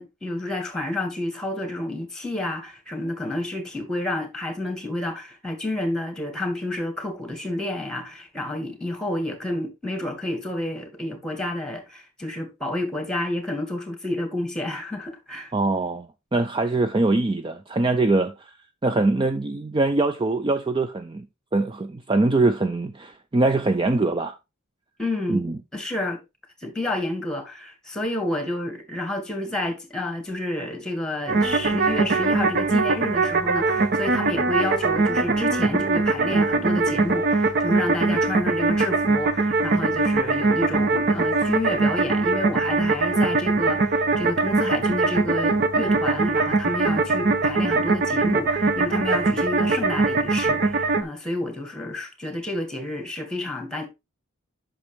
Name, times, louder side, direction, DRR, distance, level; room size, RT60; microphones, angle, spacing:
voice 1, 0.0-15.5 25.0-25.4 25.7-26.2 26.6-53.9, left 1 dB, 5° left, 1.9 m, -30 dB
voice 2, 15.5-18.5 18.8-21.3 21.5-24.4 25.3-25.6, right 2 dB, 20° right, 0.4 m, -23 dB
sound 1, 31.3-51.0, right 3 dB, 45° right, 0.7 m, -22 dB
8.3 x 6.1 x 3.3 m
head